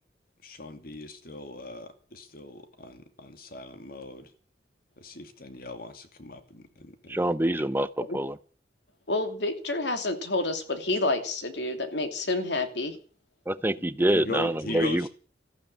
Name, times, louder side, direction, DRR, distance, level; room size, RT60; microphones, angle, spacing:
voice 1, 0.4-4.3 5.0-7.3 14.1-15.1, left 2 dB, 55° left, 2.6 m, -39 dB
voice 2, 7.1-8.4 13.5-15.1, right 1 dB, 10° right, 0.8 m, -26 dB
voice 3, 9.1-13.0, left 2 dB, 75° left, 2.9 m, -29 dB
14.5 x 11.0 x 8.8 m
head